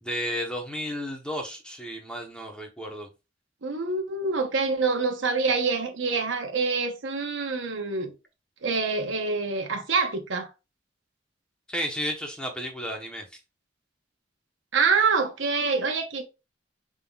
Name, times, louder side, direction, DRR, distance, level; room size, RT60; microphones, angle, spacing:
voice 1, 0.0-3.1 11.7-13.2, equal, 5° left, 1.0 m, -33 dB
voice 2, 3.6-8.1 8.6-10.5 14.7-16.2, right 4 dB, 85° right, 0.9 m, -26 dB
5.5 x 3.7 x 2.3 m
head